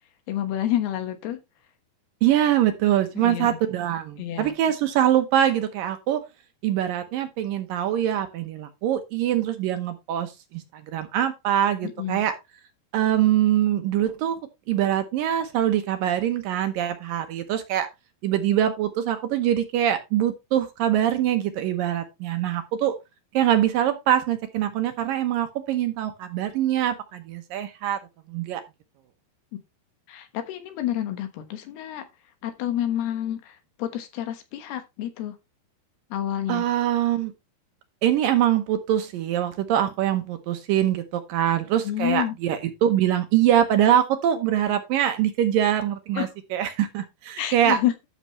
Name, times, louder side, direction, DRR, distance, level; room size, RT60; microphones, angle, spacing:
voice 1, 0.3-1.4 3.2-3.6 4.2-4.5 11.8-12.2 30.1-32.0 32.4-35.3 36.1-36.6 41.8-42.4 46.1-46.3 47.4-47.9, left 12 dB, 80° left, 3.3 m, -29 dB
voice 2, 2.2-6.2 6.6-12.4 12.9-14.4 14.7-17.9 18.2-23.0 23.3-28.0 28.3-28.6 36.5-37.3 38.0-47.8, right 11 dB, 70° right, 2.3 m, -23 dB
12.5 x 6.6 x 3.0 m
omnidirectional pair, 4.6 m